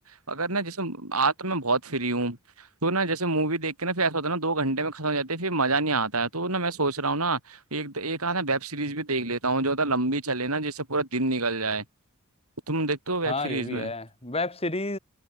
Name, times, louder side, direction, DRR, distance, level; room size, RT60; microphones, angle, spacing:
voice 1, 0.3-2.4 2.8-11.8 12.7-13.9, right 3 dB, 80° right, 7.9 m, -27 dB
voice 2, 13.2-15.0, left 2 dB, 25° left, 5.8 m, -30 dB
head